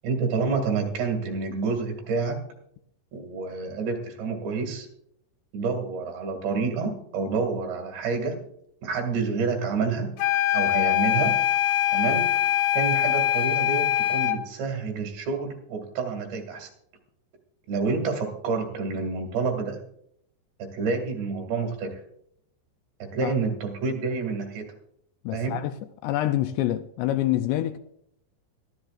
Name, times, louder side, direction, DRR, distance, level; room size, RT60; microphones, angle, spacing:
voice 1, 0.0-2.4 3.1-4.9 5.5-8.4 8.8-10.1 10.5-11.4 11.9-12.3 12.7-16.7 17.7-19.8 20.6-22.0 23.0-24.7 25.3-25.6, right 4 dB, 70° right, 4.3 m, -28 dB
sound 1, 10.2-14.4, left 12 dB, 65° left, 2.2 m, -23 dB
voice 2, 25.2-25.7 26.0-27.8, left 13 dB, 80° left, 2.6 m, -26 dB
22.5 x 14.0 x 2.5 m
omnidirectional pair, 5.3 m